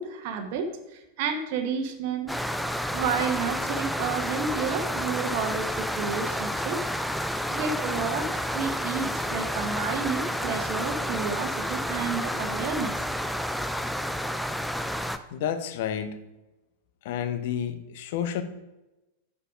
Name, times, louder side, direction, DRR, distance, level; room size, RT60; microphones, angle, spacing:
voice 1, 0.0-2.3 2.9-6.8 7.5-12.9, right 5 dB, 50° right, 5 dB, 1.0 m, -31 dB
sound 1, 2.3-15.2, equal, ahead, 0.5 m, -30 dB
voice 2, 15.3-16.2 17.0-18.4, left 9 dB, 50° left, 10 dB, 0.8 m, -30 dB
6.8 x 6.6 x 5.0 m, 1.0 s
figure-of-eight pair, 90°, 0 cm